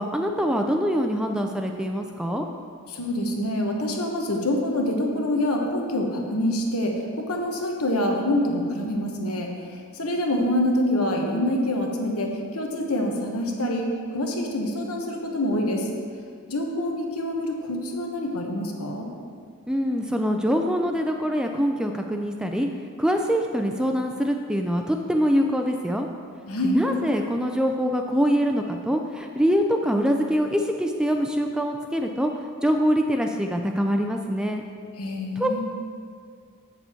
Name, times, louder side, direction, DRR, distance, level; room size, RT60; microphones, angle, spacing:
voice 1, 0.0-2.5 19.7-22.7 23.0-26.1 26.6-32.3 32.6-34.6 35.4-35.6, equal, 5° right, 3 dB, 0.3 m, -24 dB
voice 2, 2.9-9.5 9.9-15.9 16.5-19.1 26.5-26.8 35.0-35.6, left 1 dB, 75° left, 1 dB, 1.2 m, -26 dB
8.2 x 6.8 x 4.4 m, 2.1 s
head